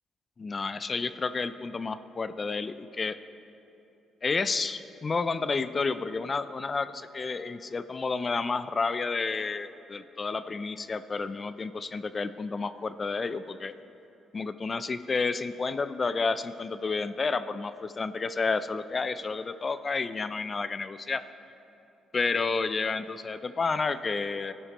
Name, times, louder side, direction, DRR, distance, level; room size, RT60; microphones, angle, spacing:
voice 1, 0.4-3.2 4.2-13.7 14.3-21.2 22.1-24.5, left 4 dB, 35° left, 13 dB, 0.4 m, -30 dB
18.0 x 11.0 x 3.0 m, 2.9 s
cardioid pair, 90°, 0 cm